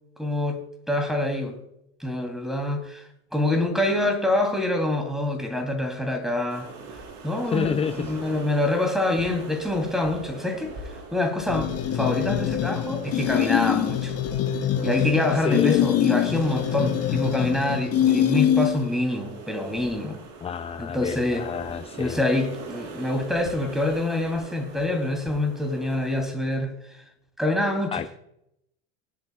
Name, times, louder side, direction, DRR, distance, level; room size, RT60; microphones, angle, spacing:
voice 1, 0.2-1.6 2.0-6.7 7.2-10.7 11.1-14.1 14.8-20.2 20.8-21.5 22.0-27.0 27.4-28.0, left 1 dB, ahead, 5 dB, 3.1 m, -26 dB
sound 1, 6.5-26.2, right 3 dB, 55° right, 4.2 m, -42 dB
voice 2, 7.5-8.0 15.4-15.8 20.4-22.2 27.9-28.2, left 7 dB, 15° left, 11 dB, 0.4 m, -28 dB
sound 2, 11.5-19.0, left 11 dB, 40° left, 1.0 m, -24 dB
24.0 x 8.5 x 2.4 m, 0.80 s
supercardioid pair, 105°, 36 cm